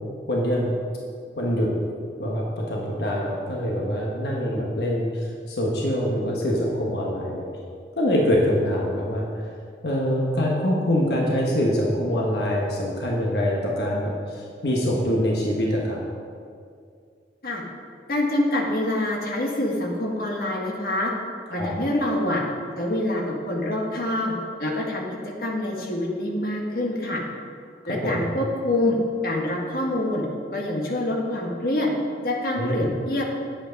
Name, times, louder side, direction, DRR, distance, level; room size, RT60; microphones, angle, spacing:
voice 1, 0.3-0.7 1.4-1.7 2.2-7.4 8.0-9.3 9.8-16.0 21.5-21.7 27.8-28.2 32.6-32.9, equal, 75° left, -3 dB, 1.3 m, -24 dB
voice 2, 18.1-21.1 21.5-22.4 22.8-24.3 24.6-25.1 25.4-27.2 27.9-29.0 29.2-30.2 30.5-31.9 32.2-33.2, left 1 dB, 55° left, -2 dB, 1.5 m, -26 dB
9.0 x 8.2 x 5.2 m, 2.3 s
head